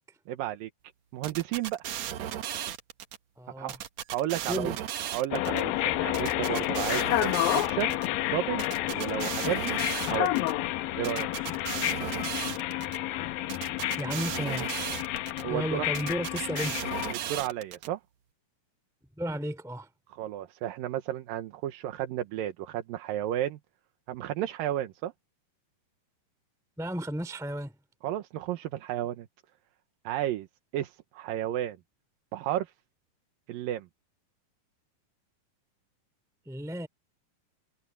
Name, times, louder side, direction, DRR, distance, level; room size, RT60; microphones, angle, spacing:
voice 1, 0.3-0.7 1.1-1.8 3.6-3.8 4.1-4.7 5.1-8.0 8.3-8.6 8.9-9.8 10.1-10.4 11.0-11.3 15.4-15.9 17.1-18.0 20.2-23.6 24.1-25.1 28.0-29.3 30.0-30.5 30.7-31.8 32.3-32.7 33.5-33.9, right 12 dB, 85° right, 2.8 m, -32 dB
sound 1, 1.2-3.2 3.7-5.6 6.1-8.1 8.6-10.5 11.0-13.0 13.5-15.4 15.9-17.9, right 11 dB, 65° right, 2.0 m, -36 dB
voice 2, 3.4-3.8 4.4-4.8 14.0-14.7 15.5-16.9 19.2-19.9 26.8-27.7 36.5-36.9, equal, ahead, 2.6 m, -33 dB
sound 2, 5.3-17.1, left 15 dB, 90° left, 2.6 m, -30 dB
omnidirectional pair, 4.0 m